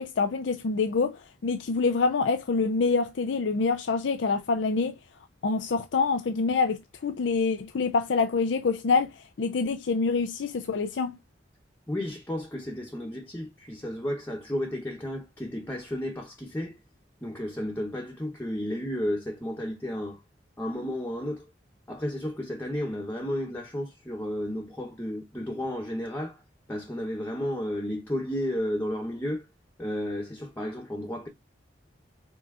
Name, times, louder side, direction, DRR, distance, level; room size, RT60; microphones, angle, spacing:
voice 1, 0.0-4.9 5.4-11.1, left 4 dB, 80° left, 0.5 m, -26 dB
voice 2, 11.9-16.8 17.2-20.2 20.6-21.5 21.9-26.4 26.7-29.5 29.8-31.3, equal, 10° left, 0.9 m, -32 dB
5.4 x 3.7 x 2.5 m
head